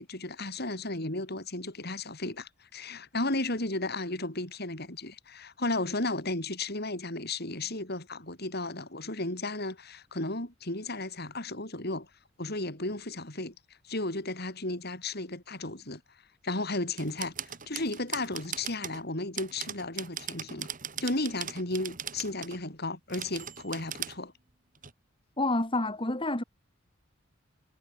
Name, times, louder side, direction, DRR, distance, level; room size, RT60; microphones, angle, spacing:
voice 1, 0.0-12.1 12.4-13.5 13.8-16.0 16.4-20.7 21.0-24.3, left 2 dB, 50° left, 6.6 m, -34 dB
sound 1, 17.0-19.0 19.4-22.6 23.1-24.2 24.8-24.9, right 9 dB, 40° right, 3.4 m, -39 dB
voice 2, 25.4-26.4, left 2 dB, 25° left, 2.8 m, -28 dB
head